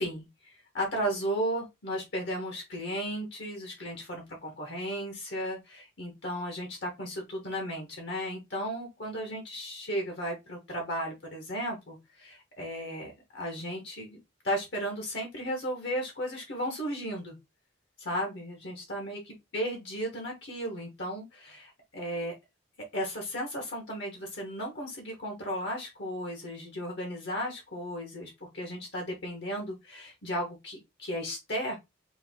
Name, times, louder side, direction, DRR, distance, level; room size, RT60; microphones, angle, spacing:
voice 1, 0.0-14.2 14.4-17.4 18.0-22.3 22.8-31.8, equal, 55° left, 2 dB, 1.1 m, -35 dB
4.6 x 2.6 x 3.5 m, 0.21 s
head